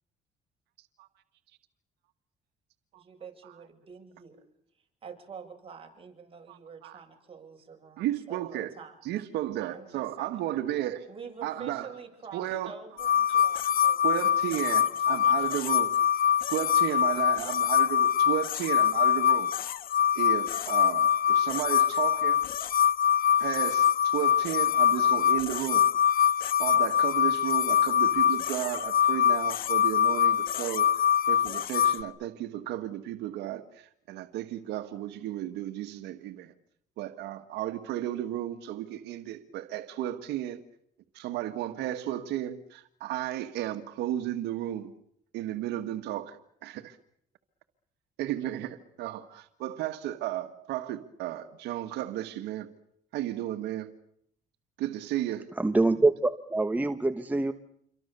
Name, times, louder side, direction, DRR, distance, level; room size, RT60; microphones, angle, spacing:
voice 1, 2.9-4.4 5.0-8.9 9.7-10.3 11.1-15.7 16.5-16.7, right 6 dB, 35° right, 7.8 m, -47 dB
voice 2, 6.5-7.0 8.0-8.8 9.0-11.1 11.4-11.9 12.3-13.0 13.3-13.7 14.0-15.9 16.5-19.5 20.2-22.4 23.4-25.9 26.6-36.5 37.0-40.6 41.1-45.0 45.3-47.0 48.2-52.7 53.1-53.9 54.8-55.5, right 13 dB, 85° right, 1.7 m, -34 dB
sound 1, 13.0-32.0, left 9 dB, 60° left, 1.5 m, -24 dB
voice 3, 55.6-57.5, right 2 dB, 10° right, 1.2 m, -25 dB
28.5 x 24.0 x 6.9 m
cardioid pair, 110°, 17 cm